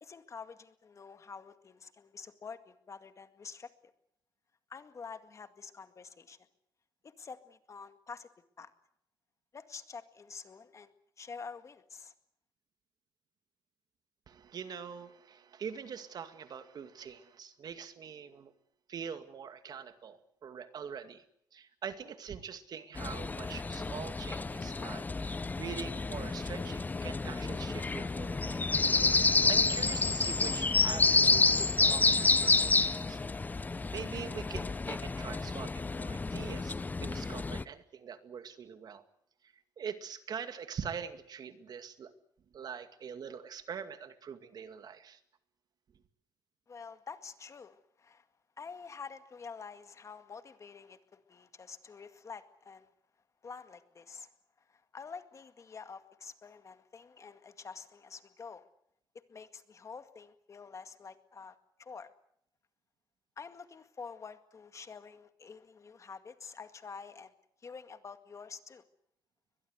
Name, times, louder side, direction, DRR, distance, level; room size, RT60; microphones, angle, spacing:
voice 1, 0.0-3.7 4.7-6.4 7.0-8.3 8.6-8.7 9.5-12.1 46.7-48.3 48.6-52.9 53.4-54.3 54.6-58.7 59.3-62.1 63.4-67.3 67.6-68.8, left 5 dB, 40° left, 9 dB, 2.0 m, -48 dB
voice 2, 14.3-18.5 18.9-21.2 21.5-28.6 29.1-33.2 33.9-36.7 37.0-39.0 39.4-42.1 42.5-45.2, right 7 dB, 55° right, 9 dB, 2.2 m, -44 dB
sound 1, 23.0-37.6, left 3 dB, 20° left, 0.8 m, -29 dB
22.5 x 21.5 x 8.2 m, 0.72 s
cardioid pair, 100°, 8 cm